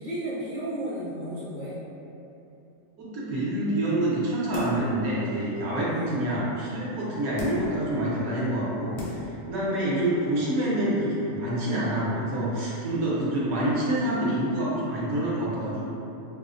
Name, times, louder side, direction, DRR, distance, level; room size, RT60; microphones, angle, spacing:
voice 1, 0.0-1.8 5.8-6.3, right 1 dB, 55° left, -12 dB, 0.4 m, -33 dB
voice 2, 3.0-15.8, right 1 dB, 70° right, -7 dB, 1.2 m, -27 dB
sound 1, 4.5-5.0 5.4-5.5 7.4-7.8 8.5-8.6 9.0-9.4 9.8-9.9, left 2 dB, 80° left, 1.1 m, -37 dB
4.9 x 2.1 x 2.4 m, 2.8 s
omnidirectional pair, 1.7 m